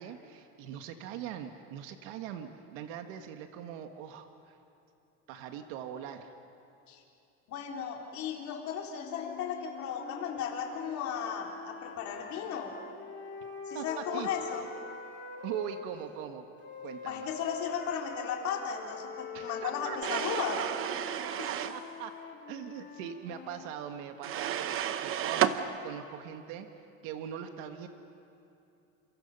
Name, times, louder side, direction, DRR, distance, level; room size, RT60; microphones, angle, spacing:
voice 1, 0.0-4.6 5.3-6.3 13.7-14.3 15.4-16.4 16.8-17.3 19.3-20.6 21.2-22.1 22.5-24.7 25.0-26.7 27.0-27.9, right 9 dB, 85° right, 6 dB, 1.7 m, -41 dB
voice 2, 7.5-12.7 13.7-14.7 17.0-20.6 21.4-21.5, left 7 dB, 45° left, 0 dB, 3.9 m, -35 dB
sound 1, 8.9-15.9 16.6-23.8, left 5 dB, 30° left, 2.3 m, -45 dB
sound 2, 20.0-21.8 24.2-25.6, right 11 dB, 35° right, 0.9 m, -31 dB
30.0 x 28.0 x 5.6 m, 2.8 s
cardioid pair, 170°, 38 cm